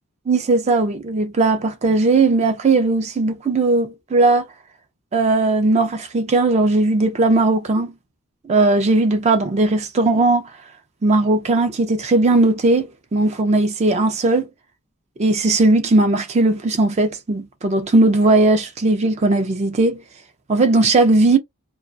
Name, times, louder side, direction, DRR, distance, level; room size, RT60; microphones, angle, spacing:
voice 1, 0.3-4.5 5.1-7.9 8.4-10.5 11.0-14.5 15.2-20.0 20.5-21.4, right 2 dB, 30° right, 0.4 m, -17 dB
2.2 x 2.2 x 2.5 m
head